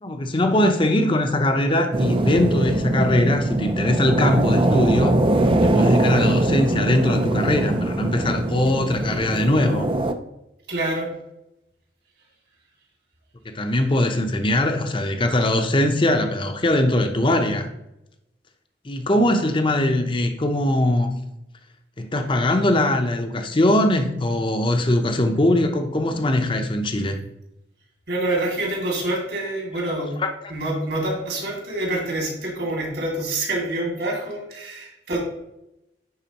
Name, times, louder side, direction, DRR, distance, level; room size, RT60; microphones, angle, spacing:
voice 1, 0.0-5.2 5.6-9.9 13.4-17.7 18.8-21.2 22.0-27.2 30.2-30.3, left 1 dB, 30° left, 6 dB, 0.7 m, -21 dB
sound 1, 1.9-10.1, right 2 dB, 30° right, 0.4 m, -22 dB
voice 2, 10.7-11.1 28.1-30.1 30.5-35.2, right 2 dB, 65° right, -1 dB, 2.3 m, -26 dB
10.5 x 4.1 x 2.9 m, 0.89 s
head